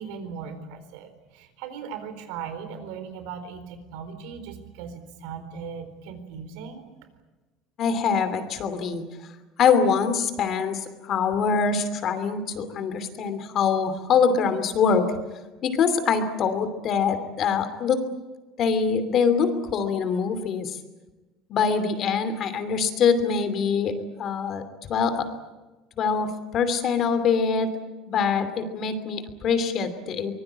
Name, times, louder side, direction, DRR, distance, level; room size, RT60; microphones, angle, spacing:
voice 1, 0.0-6.9, right 6 dB, 80° right, 10 dB, 4.1 m, -38 dB
voice 2, 7.8-9.0 9.6-15.1 15.6-18.0 18.6-20.8 21.5-23.9 24.2-24.6 24.9-25.3 26.0-27.7 28.1-30.3, left 6 dB, 35° left, 10 dB, 2.7 m, -24 dB
24.5 x 21.5 x 8.8 m, 1.2 s
cardioid pair, 165°, 0 cm